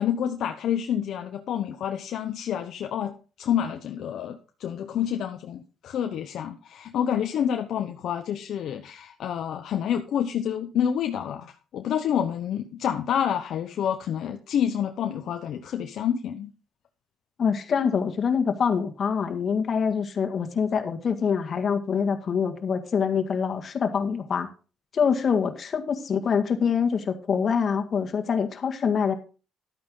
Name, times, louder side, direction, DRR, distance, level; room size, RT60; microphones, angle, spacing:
voice 1, 0.0-16.5, left 9 dB, 70° left, 5 dB, 0.9 m, -28 dB
voice 2, 17.4-24.5 24.9-29.1, left 6 dB, 50° left, 5 dB, 1.8 m, -25 dB
12.0 x 8.9 x 3.8 m, 0.35 s
cardioid pair, 85°, 0 cm